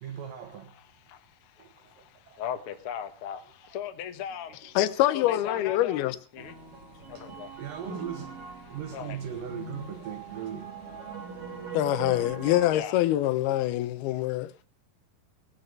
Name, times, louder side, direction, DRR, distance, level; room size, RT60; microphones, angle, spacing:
voice 1, 0.0-0.8 1.6-2.4 7.1-7.3 7.6-8.4 8.7-10.7, right 9 dB, 70° right, 2.7 m, -39 dB
voice 2, 0.7-4.8 5.1-6.0 6.3-7.7 8.6-9.2 11.1-11.8 12.7-13.0, left 9 dB, 65° left, 1.3 m, -40 dB
voice 3, 4.8-6.2 11.7-14.5, left 14 dB, 85° left, 2.8 m, -25 dB
sound 1, 6.4-12.7, right 4 dB, 40° right, 3.1 m, -41 dB
17.5 x 10.0 x 5.3 m
omnidirectional pair, 4.4 m